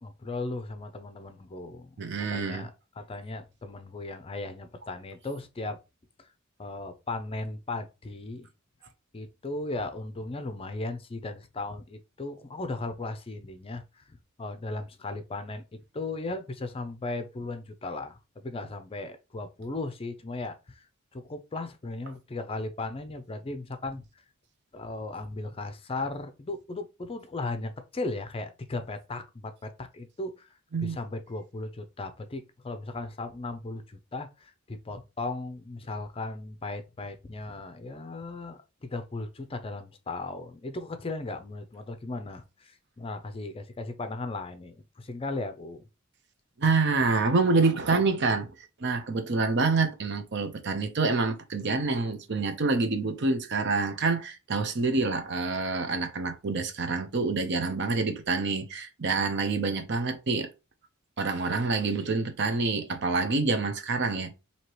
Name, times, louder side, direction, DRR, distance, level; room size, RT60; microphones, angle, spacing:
voice 1, 0.0-2.0 2.3-2.7 3.0-5.8 6.2-6.3 6.6-8.5 9.1-20.9 21.1-24.0 24.7-30.5 30.8-45.9, left 2 dB, 25° left, 0.5 m, -37 dB
voice 2, 2.0-2.6 30.7-31.0 46.6-48.5 48.8-60.5 61.2-64.3, right 3 dB, 55° right, 0.7 m, -27 dB
4.6 x 2.8 x 3.0 m
head